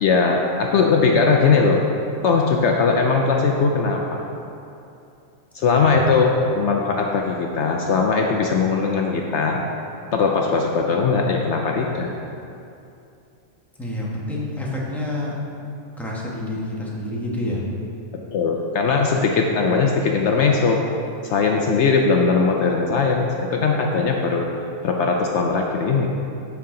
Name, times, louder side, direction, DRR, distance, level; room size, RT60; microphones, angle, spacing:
voice 1, 0.0-1.8 2.2-4.3 5.5-9.6 10.1-12.1 18.3-20.8 21.2-24.5 24.8-26.1, left 4 dB, 65° left, 1 dB, 0.9 m, -19 dB
voice 2, 13.8-15.3 16.0-17.6, left 1 dB, ahead, -5 dB, 1.2 m, -28 dB
12.5 x 4.7 x 3.8 m, 2.7 s
omnidirectional pair, 1.3 m